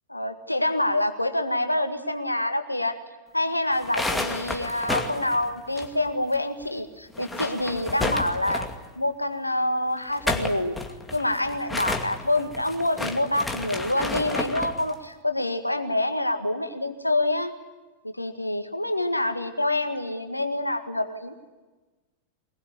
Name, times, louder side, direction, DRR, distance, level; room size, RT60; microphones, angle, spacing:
voice 1, 0.1-3.0 3.3-8.7 9.0-10.8 11.1-17.5 18.0-21.3, left 1 dB, 85° left, 8 dB, 1.8 m, -26 dB
sound 1, 3.7-6.4 6.6-6.7 7.1-8.9 10.0-14.8, left 2 dB, 10° left, 2.4 m, -31 dB
23.0 x 21.0 x 9.8 m, 1.2 s
figure-of-eight pair, 90°, 0 cm